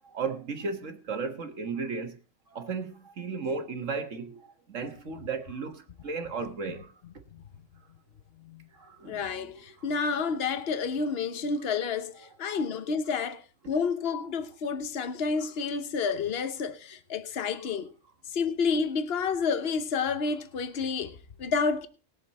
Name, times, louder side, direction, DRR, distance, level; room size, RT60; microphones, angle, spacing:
voice 1, 0.1-2.2 2.5-6.9 8.8-9.5 17.4-17.5, right 4 dB, 85° right, 1.9 m, -35 dB
voice 2, 8.4-8.7 9.0-17.9 18.3-21.9, left 5 dB, 55° left, 1.2 m, -30 dB
19.5 x 7.2 x 4.2 m
omnidirectional pair, 1.3 m